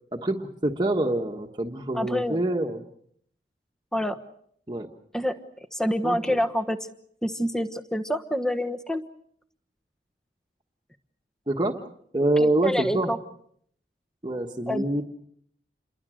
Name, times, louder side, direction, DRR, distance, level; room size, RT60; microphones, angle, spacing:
voice 1, 0.1-2.8 4.7-4.9 6.0-6.2 11.5-11.8 12.1-13.1 14.2-15.0, right 1 dB, 25° right, 2 dB, 1.4 m, -26 dB
voice 2, 1.9-2.4 3.9-4.2 5.1-5.4 5.7-6.9 7.2-9.0 12.4-13.2 14.7-14.8, equal, 5° left, 9 dB, 1.2 m, -27 dB
28.5 x 22.5 x 6.4 m, 0.68 s
head